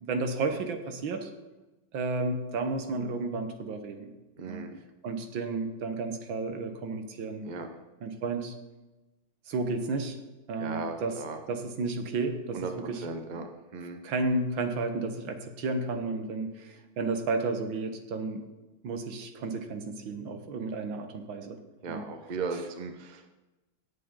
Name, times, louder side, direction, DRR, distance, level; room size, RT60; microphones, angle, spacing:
voice 1, 0.0-1.3 1.9-4.1 4.5-4.7 5.0-7.5 8.0-8.5 9.5-10.2 10.5-11.2 11.5-13.0 13.4-13.5 14.0-18.4 18.8-21.6 21.9-22.0, right 3 dB, 70° right, 6 dB, 1.9 m, -32 dB
voice 2, 4.4-4.7 7.4-7.7 10.6-11.4 12.5-12.7 13.0-13.5 13.7-14.0 21.8-23.3, right 4 dB, 40° right, 5 dB, 0.6 m, -36 dB
17.5 x 7.7 x 3.8 m, 1.1 s
omnidirectional pair, 2.2 m